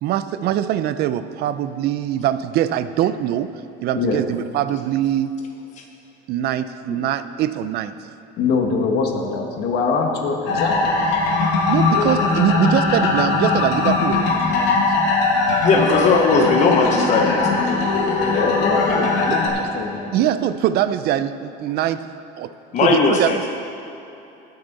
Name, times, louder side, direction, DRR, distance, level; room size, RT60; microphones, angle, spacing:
voice 1, 0.0-3.5 3.8-5.3 6.3-8.0 11.7-14.8 20.1-22.1 22.4-22.5 22.8-23.4, right 11 dB, 55° right, 12 dB, 0.5 m, -22 dB
voice 2, 3.9-4.2 8.4-11.0 11.9-12.7 16.0-17.9 18.2-20.3, left 4 dB, 60° left, 2 dB, 1.6 m, -25 dB
sound 1, 10.5-19.5, left 3 dB, 80° left, 1.9 m, -20 dB
voice 3, 15.6-17.6 22.7-23.5, left 4 dB, 40° left, 1 dB, 0.9 m, -18 dB
20.0 x 6.7 x 4.1 m, 2.8 s
cardioid pair, 140°, 19 cm